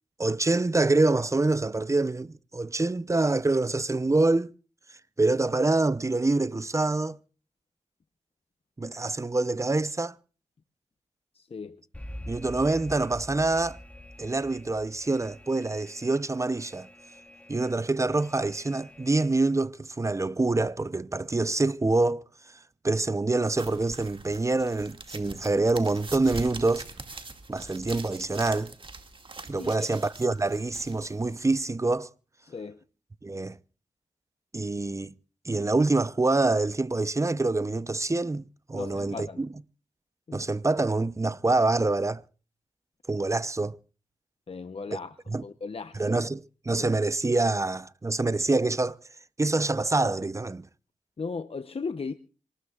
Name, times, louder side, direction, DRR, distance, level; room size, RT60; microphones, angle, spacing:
voice 1, 0.2-4.5 5.2-7.2 8.8-10.1 12.3-13.8 14.2-16.9 17.5-22.2 22.8-26.9 27.5-28.7 29.5-32.1 33.2-33.6 34.5-35.1 35.4-39.5 40.3-42.2 43.1-43.8 45.3-45.4 45.9-49.0 49.4-50.7, right 2 dB, 25° right, 0.7 m, -26 dB
voice 2, 11.3-11.8 29.6-29.9 32.4-32.8 38.7-39.4 40.3-40.4 44.5-45.1 45.4-46.0 46.8-46.9 51.2-52.1, left 4 dB, 50° left, 0.9 m, -36 dB
Alarm, 11.9-19.6, left 1 dB, 10° left, 2.2 m, -46 dB
sound 1, 23.5-31.6, right 3 dB, 40° right, 2.2 m, -43 dB
26.5 x 19.5 x 2.4 m
cardioid pair, 60°, 13 cm